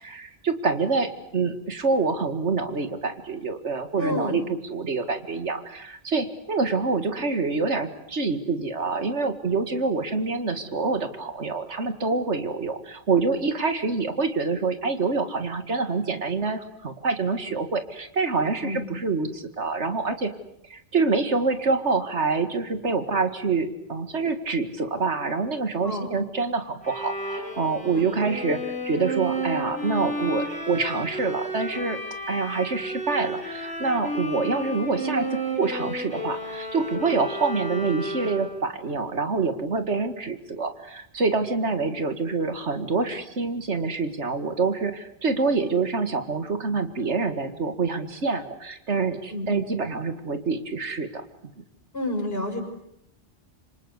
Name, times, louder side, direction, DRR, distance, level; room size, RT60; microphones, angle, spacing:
voice 1, 0.0-20.3 20.7-32.0 32.3-51.2, right 4 dB, 85° right, 9 dB, 2.3 m, -26 dB
voice 2, 4.0-4.4 18.6-18.9 25.8-26.1 27.9-28.1 49.3-49.5 51.9-52.6, left 1 dB, 60° left, 3 dB, 6.3 m, -29 dB
Bowed string instrument, 26.8-38.7, right 1 dB, 5° left, 6.6 m, -32 dB
27.0 x 25.5 x 8.2 m, 0.78 s
omnidirectional pair, 1.1 m